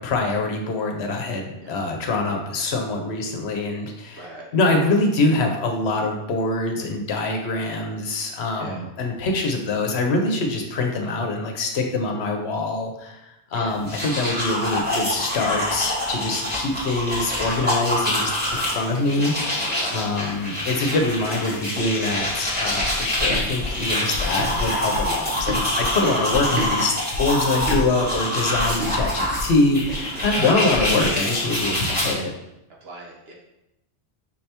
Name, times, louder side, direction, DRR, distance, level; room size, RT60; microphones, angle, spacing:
voice 1, 0.0-4.3 4.5-19.3 19.9-32.3, left 2 dB, 70° left, 2 dB, 0.9 m, -24 dB
voice 2, 4.2-4.5 8.5-8.8 13.5-13.7 19.7-20.1 28.5-28.7 30.4-30.6 32.8-33.3, right 2 dB, 60° right, -2 dB, 1.2 m, -38 dB
sound 1, 13.7-32.1, left 1 dB, 10° right, 1.4 m, -26 dB
sound 2, 22.8-26.7 27.1-31.1, left 1 dB, 90° right, 1.2 m, -30 dB
5.3 x 3.3 x 2.8 m, 0.89 s
omnidirectional pair, 1.2 m